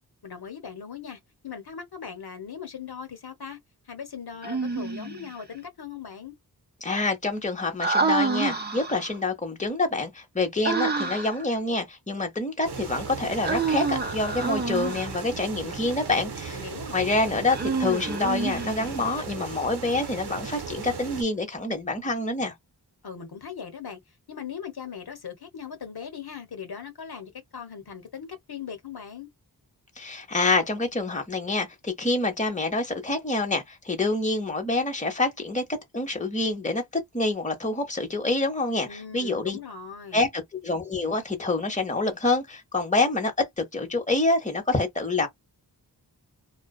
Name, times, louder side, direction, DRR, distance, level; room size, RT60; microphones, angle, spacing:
voice 1, 0.2-3.6 3.9-6.3 16.5-17.5 23.0-24.0 24.3-29.3 38.9-40.3, left 7 dB, 70° left, 0.9 m, -39 dB
Human voice, 4.4-5.3 7.8-9.2 10.6-11.4 13.4-15.2 17.5-19.1, right 4 dB, 25° right, 0.8 m, -28 dB
voice 2, 6.8-16.6 16.9-22.5 30.0-35.6 35.9-39.6 40.1-45.3, left 2 dB, 20° left, 0.9 m, -27 dB
sound 1, 12.6-21.2, right 5 dB, 80° right, 0.7 m, -36 dB
2.5 x 2.2 x 2.3 m
wide cardioid pair, 75°, 40 cm